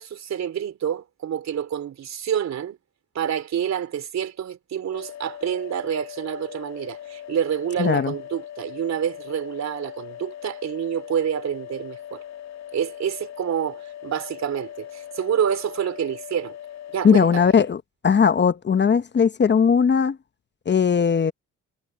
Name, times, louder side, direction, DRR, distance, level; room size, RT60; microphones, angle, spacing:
voice 1, 0.0-2.8 3.2-12.2 12.7-16.6 16.9-17.5, right 9 dB, 60° right, 3.5 m, -28 dB
sound 1, 4.9-17.7, left 10 dB, 65° left, 3.2 m, -40 dB
voice 2, 7.8-8.1 17.0-20.2 20.7-21.3, left 6 dB, 35° left, 0.9 m, -19 dB
cardioid pair, 95°, 30 cm